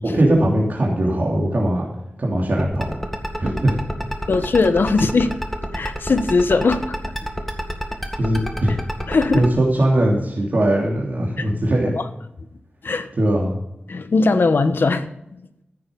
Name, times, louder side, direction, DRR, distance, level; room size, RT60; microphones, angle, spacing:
voice 1, 0.0-1.9 2.2-3.0 3.4-3.8 8.2-8.8 9.3-11.9 13.2-13.5, right 1 dB, 55° right, -2 dB, 3.0 m, -20 dB
sound 1, 2.6-9.5, equal, 5° left, 2.0 m, -27 dB
voice 2, 4.3-5.3 5.7-6.9 9.1-9.4 11.4-11.5 12.8-13.1 13.9-15.1, left 3 dB, 75° left, 10 dB, 1.1 m, -19 dB
14.5 x 8.7 x 5.3 m, 0.83 s
wide cardioid pair, 90°, 4 cm